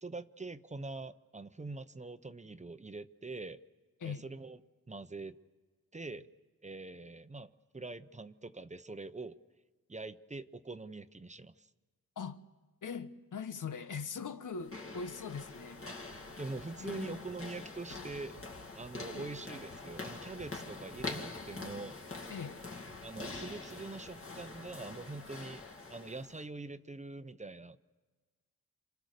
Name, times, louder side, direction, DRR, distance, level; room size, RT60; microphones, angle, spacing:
voice 1, 0.0-3.6 4.0-4.6 4.9-5.4 5.9-6.3 6.6-9.4 9.9-11.7 16.4-18.4 18.7-22.0 23.0-27.8, right 3 dB, 25° right, 0.8 m, -44 dB
voice 2, 12.8-15.9 16.8-17.3 19.1-19.4 22.3-22.6, left 5 dB, 75° left, 1.1 m, -41 dB
sound 1, 14.5-26.5, left 3 dB, 45° left, 2.5 m, -45 dB
sound 2, 15.7-25.2, right 3 dB, 85° right, 1.9 m, -61 dB
28.0 x 27.0 x 6.7 m
wide cardioid pair, 95°, 31 cm